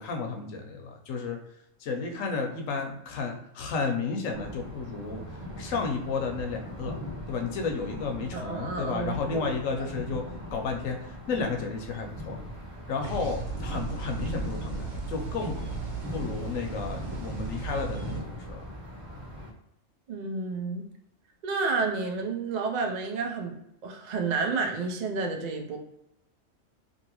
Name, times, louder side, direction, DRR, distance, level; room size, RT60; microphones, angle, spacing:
voice 1, 0.0-1.4 1.8-5.2 5.6-6.9 7.3-10.2 10.5-12.4 12.9-15.6 16.1-18.6, left 4 dB, 80° left, 3 dB, 1.0 m, -32 dB
sound 1, 4.3-19.5, equal, 30° right, 0.7 m, -41 dB
voice 2, 8.3-9.5 9.8-9.9 20.1-20.8 21.4-25.8, right 4 dB, 80° right, 2 dB, 0.3 m, -30 dB
sound 2, 13.0-18.2, right 3 dB, 60° right, 1.0 m, -36 dB
2.8 x 2.6 x 2.8 m, 0.79 s
omnidirectional pair, 1.4 m